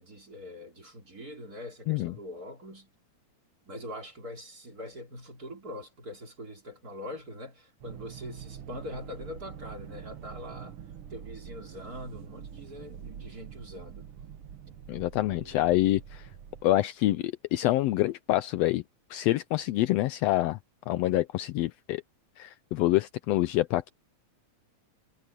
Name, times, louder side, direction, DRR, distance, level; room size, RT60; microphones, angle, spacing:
voice 1, 0.0-2.9 3.7-10.8 11.1-14.1, left 1 dB, 30° right, 4.6 m, -43 dB
interior of mooving car engine, 7.8-16.6, right 8 dB, 60° right, 1.7 m, -45 dB
voice 2, 14.9-16.2 16.6-18.8 19.1-20.6 20.9-22.0 22.4-23.9, left 16 dB, 90° left, 1.4 m, -26 dB
omnidirectional pair, 3.5 m